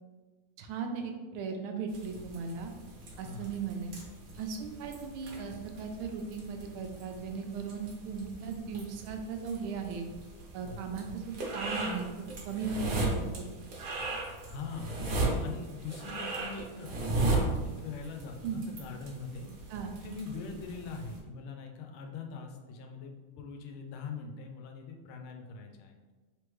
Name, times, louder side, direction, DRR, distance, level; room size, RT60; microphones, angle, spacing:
voice 1, 0.6-2.7 3.2-3.9 4.4-10.1 10.5-11.2 11.5-12.1 12.5-13.5 18.4-18.6 19.7-19.9, right 5 dB, 85° right, 4 dB, 1.5 m, -37 dB
sound 1, 1.9-21.2, right 2 dB, 60° right, 1.3 m, -37 dB
voice 2, 3.1-3.6 10.6-10.9 14.4-15.0 15.4-19.7 20.0-25.9, left 5 dB, 85° left, 3 dB, 1.5 m, -42 dB
3.6 x 3.4 x 3.1 m, 1.3 s
omnidirectional pair, 2.3 m